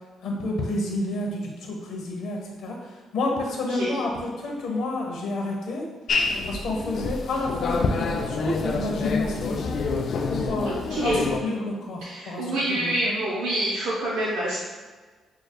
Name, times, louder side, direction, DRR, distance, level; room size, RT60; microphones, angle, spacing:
voice 1, 0.2-5.9 6.1-9.7 10.3-13.1, left 2 dB, 75° left, 0 dB, 0.9 m, -30 dB
voice 2, 3.7-4.0 10.6-11.3 12.0-14.6, right 1 dB, 90° right, -7 dB, 0.7 m, -27 dB
sound 1, 6.1-11.4, left 4 dB, 55° left, 0.3 m, -27 dB
6.5 x 2.3 x 2.2 m, 1.4 s
cardioid pair, 90°, 0 cm